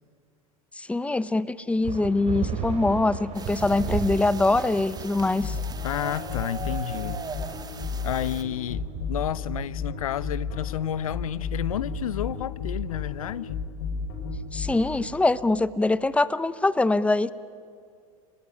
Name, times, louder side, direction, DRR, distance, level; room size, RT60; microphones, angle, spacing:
voice 1, 0.8-5.6 14.5-17.3, left 2 dB, 5° left, 0.9 m, -23 dB
sound 1, 1.8-11.8, right 6 dB, 40° right, 3.4 m, -36 dB
sound 2, 3.3-8.4, right 5 dB, 20° right, 2.1 m, -40 dB
sound 3, 5.4-14.8, left 5 dB, 60° left, 7.1 m, -32 dB
voice 2, 5.8-7.2 8.0-13.6, left 11 dB, 85° left, 0.6 m, -31 dB
30.0 x 20.5 x 9.7 m
hypercardioid pair, 95°, 18 cm